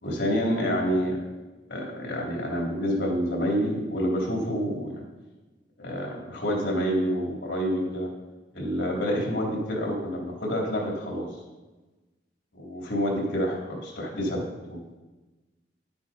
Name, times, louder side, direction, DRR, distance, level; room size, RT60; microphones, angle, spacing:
voice 1, 0.0-1.2 1.7-5.0 5.8-8.1 8.5-11.3 12.5-14.4 14.7-15.0, equal, 90° left, -2 dB, 3.4 m, -28 dB
11.0 x 9.6 x 4.3 m, 1.2 s
head